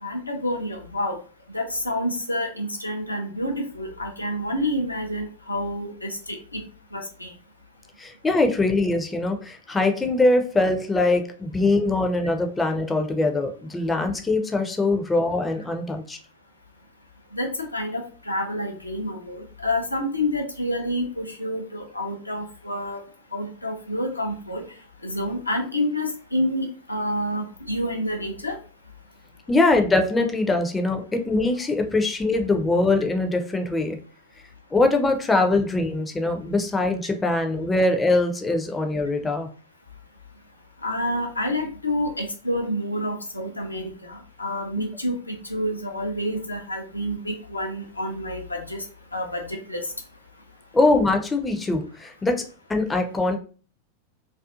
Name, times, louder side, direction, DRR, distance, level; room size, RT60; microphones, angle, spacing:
voice 1, 0.0-1.2 1.5-6.6 6.9-7.3 17.3-23.0 23.3-24.6 25.0-28.5 40.8-48.8 49.1-49.8, left 1 dB, 85° left, 2 dB, 0.5 m, -28 dB
voice 2, 8.0-16.2 29.5-34.0 34.7-39.5 50.7-52.4 52.7-53.4, left 2 dB, 10° left, 4 dB, 0.4 m, -22 dB
2.5 x 2.3 x 2.3 m, 0.38 s
figure-of-eight pair, 90°, 0 cm